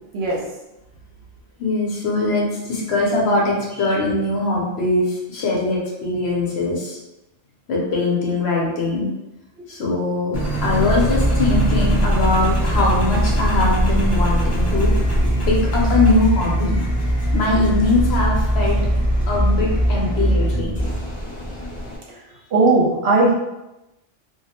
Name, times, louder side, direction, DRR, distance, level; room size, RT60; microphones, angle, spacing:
voice 1, 1.6-7.0 7.7-9.1 9.7-14.9 15.5-16.8 17.3-18.8 19.3-20.7, left 2 dB, 65° left, -3 dB, 0.8 m, -21 dB
Engine, 10.3-22.0, right 1 dB, 15° left, 0.6 m, -20 dB
voice 2, 15.1-15.5 19.9-20.0 22.1-22.2 22.5-23.3, right 3 dB, 65° right, -5 dB, 0.8 m, -19 dB
2.3 x 2.0 x 2.8 m, 0.95 s
omnidirectional pair, 1.3 m